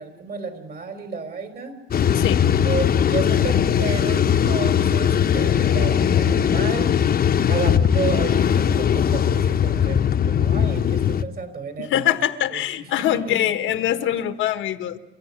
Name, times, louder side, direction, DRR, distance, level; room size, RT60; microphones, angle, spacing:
voice 1, 0.0-1.7 2.6-6.9 7.4-12.1 12.5-12.6 13.0-13.9, right 4 dB, 50° right, 8 dB, 4.1 m, -32 dB
sound 1, 1.9-11.2, left 8 dB, 50° left, 0.9 m, -19 dB
voice 2, 2.1-2.5 3.3-3.4 11.8-15.0, left 11 dB, 90° left, 10 dB, 1.5 m, -23 dB
28.0 x 14.5 x 9.8 m, 1.0 s
cardioid pair, 90°, 20 cm